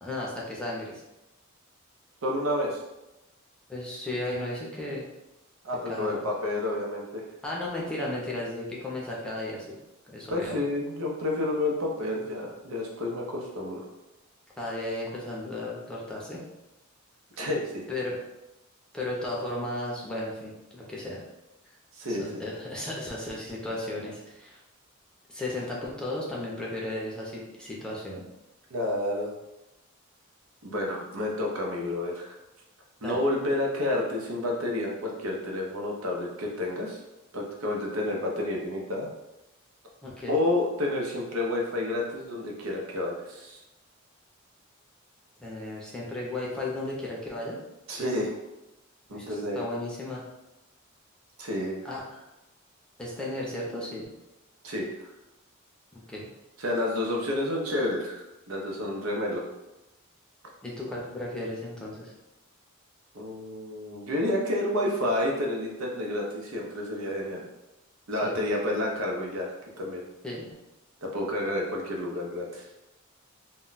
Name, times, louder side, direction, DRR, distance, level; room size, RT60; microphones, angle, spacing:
voice 1, 0.0-1.0 3.7-5.0 5.9-6.2 7.4-9.8 10.1-10.6 14.6-16.4 17.9-18.2 18.9-21.2 22.2-24.6 25.3-28.2 33.0-33.2 40.0-40.4 45.4-47.6 49.1-50.2 51.8-52.3 53.0-54.1 55.9-56.3 60.6-62.1 68.2-68.4 70.2-70.5, left 1 dB, 5° left, -5 dB, 0.5 m, -35 dB
voice 2, 2.2-2.8 5.6-7.2 10.3-13.8 17.4-17.9 21.9-22.4 28.7-29.3 30.6-32.4 33.0-37.0 37.3-39.1 40.3-43.6 47.9-48.3 49.1-49.6 51.4-51.8 54.6-54.9 56.6-59.4 63.1-67.5 68.1-70.1 71.0-72.7, left 1 dB, 85° right, -1 dB, 0.6 m, -30 dB
2.2 x 2.2 x 3.9 m, 0.95 s
head